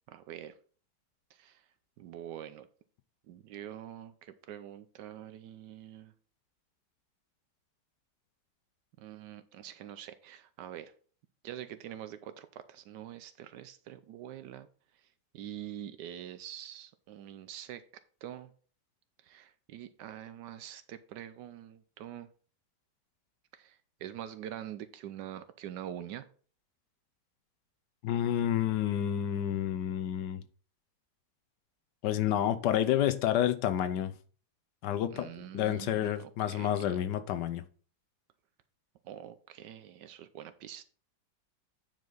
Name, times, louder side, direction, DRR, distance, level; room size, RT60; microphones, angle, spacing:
voice 1, 0.1-0.6 1.3-1.6 2.0-2.7 3.3-6.1 9.0-10.9 11.4-14.7 15.3-17.8 18.2-18.5 19.2-22.3 23.5-26.3 35.1-36.9 39.0-40.8, right 11 dB, 80° right, 12 dB, 1.2 m, -45 dB
voice 2, 28.0-30.4 32.0-34.1 34.8-37.6, left 11 dB, 75° left, 11 dB, 1.3 m, -29 dB
9.3 x 5.0 x 3.9 m, 0.42 s
omnidirectional pair, 1.9 m